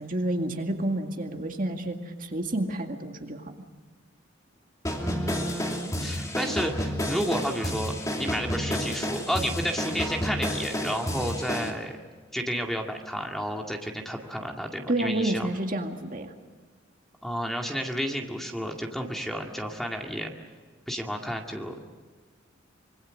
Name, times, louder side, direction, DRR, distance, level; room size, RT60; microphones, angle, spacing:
voice 1, 0.0-3.4 14.9-16.3, right 1 dB, 45° right, 4 dB, 2.1 m, -29 dB
sound 1, 4.8-11.7, equal, 15° left, 2.8 m, -30 dB
voice 2, 5.0-12.0 12.3-15.5 17.2-20.3 20.9-21.8, equal, ahead, 2 dB, 2.1 m, -31 dB
25.5 x 23.5 x 6.5 m, 1.5 s
head